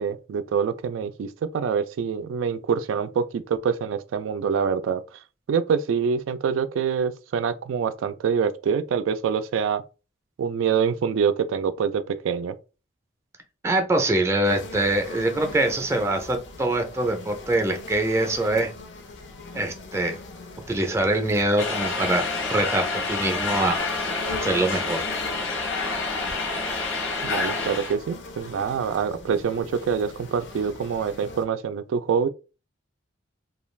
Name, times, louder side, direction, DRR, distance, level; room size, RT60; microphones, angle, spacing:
voice 1, 0.0-5.2 5.5-9.8 10.4-12.6 27.2-32.3, right 6 dB, 85° right, 0.3 m, -25 dB
voice 2, 13.6-18.7 19.5-20.2 20.7-23.8 24.3-25.0, right 1 dB, 15° right, 0.4 m, -24 dB
sound 1, 14.4-31.4, left 3 dB, 65° left, 0.5 m, -41 dB
sound 2, 21.6-27.9, left 3 dB, 80° left, 0.9 m, -28 dB
2.4 x 2.3 x 3.1 m
head